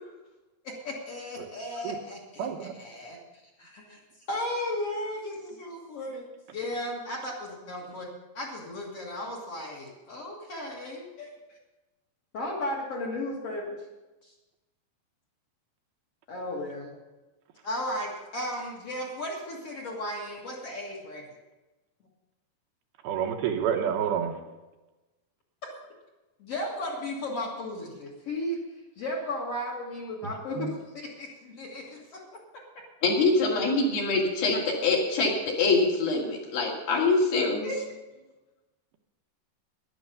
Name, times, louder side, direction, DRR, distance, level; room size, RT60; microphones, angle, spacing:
voice 1, 0.6-3.2 3.6-4.0 4.3-6.2 6.5-8.1 8.3-11.3 12.3-13.8 14.2-14.3 16.3-16.9 17.6-21.3 25.6-25.7 26.4-28.6 29.0-32.6 37.6-37.8, left 1 dB, 45° left, -2 dB, 2.2 m, -35 dB
voice 2, 2.4-2.7 23.0-24.3 30.6-30.7, right 8 dB, 75° right, 4 dB, 2.7 m, -28 dB
voice 3, 33.0-37.7, left 3 dB, 65° left, -1 dB, 4.1 m, -24 dB
11.5 x 11.0 x 6.8 m, 1.1 s
omnidirectional pair, 4.8 m